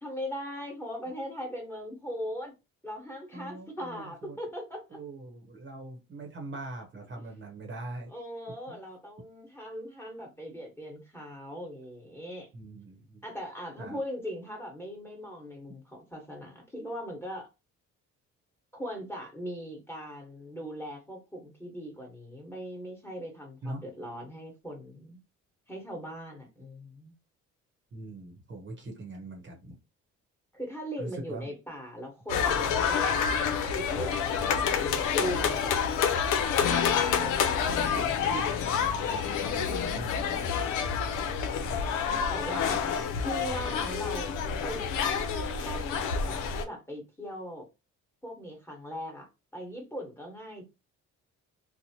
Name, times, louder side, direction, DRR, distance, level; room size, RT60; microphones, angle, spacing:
voice 1, 0.0-2.5 2.8-5.0 8.1-12.5 13.2-17.5 18.7-25.2 25.7-27.1 30.5-38.7 42.0-42.8 43.2-47.6 48.2-49.3 49.5-50.6, equal, 10° left, 1.3 m, -40 dB
voice 2, 3.3-4.4 4.9-8.1 8.7-8.8 12.5-13.2 13.8-14.0 23.6-23.8 27.9-29.8 31.0-31.5 39.9-40.5, right 2 dB, 40° right, 0.9 m, -42 dB
sound 1, 32.3-46.6, left 7 dB, 85° left, 0.6 m, -28 dB
2.9 x 2.1 x 2.8 m
cardioid pair, 90°, 30 cm